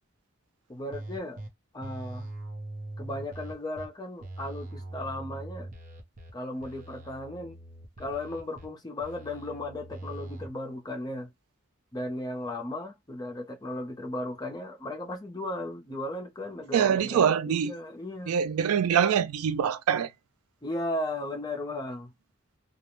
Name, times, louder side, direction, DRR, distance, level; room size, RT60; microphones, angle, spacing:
voice 1, 0.7-1.4 1.7-2.3 3.0-5.7 6.3-7.6 8.0-11.3 11.9-18.4 20.6-22.1, left 1 dB, 20° left, 0.5 m, -36 dB
sound 1, 0.9-1.5 1.8-3.9 4.2-6.3 6.6-8.7 9.0-10.5, right 2 dB, 40° right, 0.6 m, -41 dB
voice 2, 16.7-17.7 18.3-20.1, right 8 dB, 85° right, 0.3 m, -24 dB
2.3 x 2.0 x 3.0 m
head